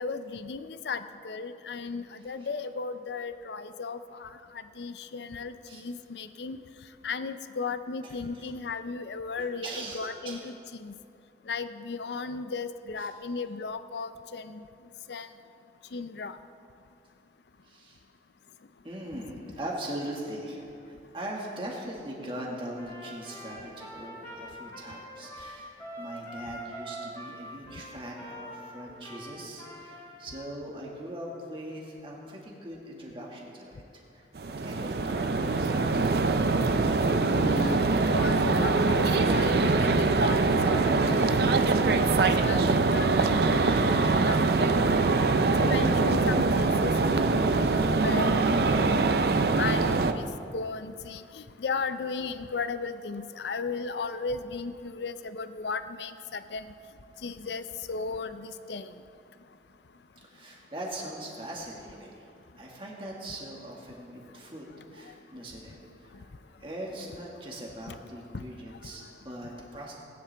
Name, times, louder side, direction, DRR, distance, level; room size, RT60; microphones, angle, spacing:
voice 1, 0.0-4.3 4.8-6.6 7.0-10.9 11.5-14.6 15.1-15.3 15.9-16.4 37.3-45.0 45.6-47.5 48.0-48.9 49.6-56.7 57.2-58.9 67.9-68.0 68.3-68.4, left 4 dB, 75° left, 11 dB, 0.5 m, -36 dB
voice 2, 8.0-8.5 9.4-10.5 13.0-13.1 17.6-18.0 18.8-34.3 34.6-36.2 60.2-66.3 66.6-70.0, right 1 dB, 30° right, -2 dB, 1.9 m, -41 dB
Trumpet, 22.7-30.5, right 1 dB, 15° left, 2.2 m, -44 dB
sound 1, 34.4-50.1, right 3 dB, 60° right, 0.5 m, -23 dB
18.5 x 10.5 x 3.4 m, 2.5 s
head